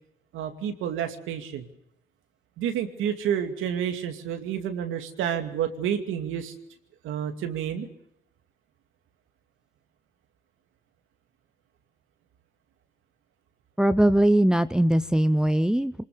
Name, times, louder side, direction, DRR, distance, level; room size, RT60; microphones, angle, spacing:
voice 1, 0.3-1.7 2.6-6.5 7.0-7.9, right 9 dB, 90° right, 6 dB, 2.5 m, -29 dB
voice 2, 13.8-16.0, right 1 dB, 5° right, 11 dB, 0.8 m, -21 dB
24.5 x 20.5 x 6.8 m, 0.79 s
cardioid pair, 90°, 20 cm